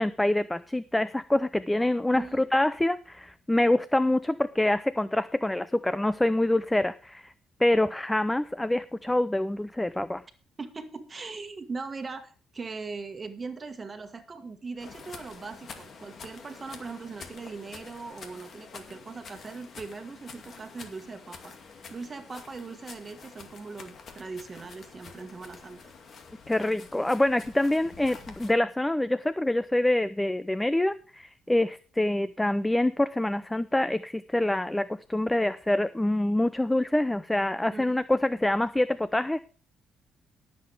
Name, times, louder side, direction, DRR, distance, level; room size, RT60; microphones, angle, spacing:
voice 1, 0.0-7.3 7.6-10.2 26.5-39.4, left 1 dB, 10° left, 14 dB, 0.5 m, -26 dB
voice 2, 2.1-2.4 10.6-21.5 21.9-25.9 37.7-38.0, right 4 dB, 30° right, 7 dB, 1.6 m, -40 dB
sound 1, 14.8-28.5, left 5 dB, 60° left, 2.2 m, -47 dB
19.5 x 7.7 x 3.4 m, 0.38 s
cardioid pair, 90°, 0 cm